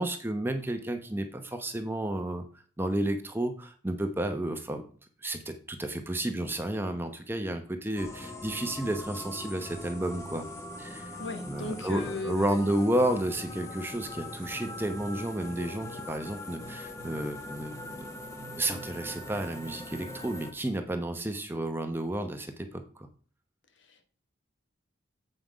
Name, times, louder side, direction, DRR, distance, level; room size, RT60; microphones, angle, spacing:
voice 1, 0.0-2.4 2.8-4.8 5.2-10.4 10.8-11.1 11.5-18.1 18.6-23.1, right 1 dB, 10° right, 6 dB, 0.8 m, -31 dB
sound 1, 7.9-20.5, left 1 dB, 15° left, 1.0 m, -41 dB
voice 2, 11.2-12.7 23.9-24.1, left 2 dB, 65° left, 7 dB, 1.2 m, -36 dB
7.8 x 5.7 x 5.0 m, 0.43 s
head